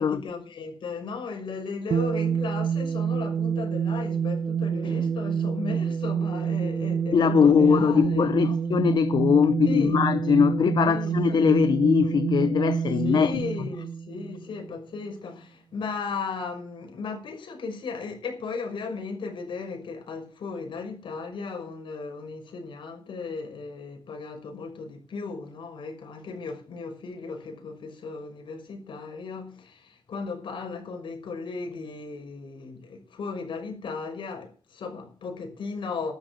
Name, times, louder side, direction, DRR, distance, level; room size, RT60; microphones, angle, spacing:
voice 1, 0.0-8.5 9.6-10.0 10.8-11.8 13.0-36.1, left 4 dB, 80° left, 6.1 m, -36 dB
sound 1, 1.9-14.7, right 7 dB, 65° right, 1.6 m, -27 dB
voice 2, 7.1-13.4, left 7 dB, 60° left, 0.8 m, -21 dB
13.0 x 11.0 x 6.1 m
wide cardioid pair, 150°, 8 cm